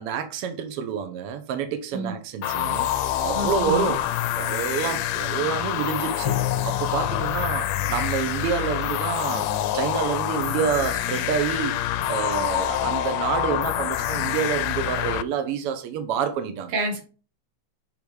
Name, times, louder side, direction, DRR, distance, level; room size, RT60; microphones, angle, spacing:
voice 1, 0.0-2.9 3.2-4.0 4.3-6.4 6.6-9.5 9.7-16.7, right 7 dB, 75° right, 1.3 m, -28 dB
sound 1, 2.4-15.2, left 12 dB, 80° left, 1.6 m, -26 dB
voice 2, 3.3-3.9 16.7-17.0, right 2 dB, 55° right, 2.3 m, -28 dB
Bowed string instrument, 6.3-9.1, left 14 dB, 60° left, 1.2 m, -32 dB
7.0 x 3.8 x 4.7 m
omnidirectional pair, 3.6 m